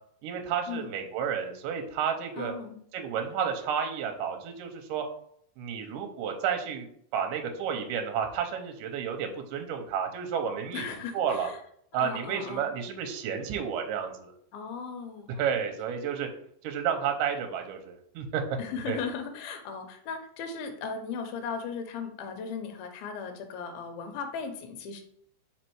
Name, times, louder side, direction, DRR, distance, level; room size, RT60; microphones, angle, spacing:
voice 1, 0.2-2.5 2.9-5.0 5.6-6.9 7.1-10.9 11.1-11.5 11.9-14.3 15.4-16.3 16.6-18.4 18.9-19.0, right 7 dB, 75° right, 5 dB, 2.2 m, -31 dB
voice 2, 2.4-2.8 10.7-11.6 12.0-12.7 14.5-15.5 18.6-25.0, left 5 dB, 90° left, 6 dB, 2.6 m, -37 dB
4.8 x 4.3 x 4.6 m, 0.66 s
omnidirectional pair, 4.3 m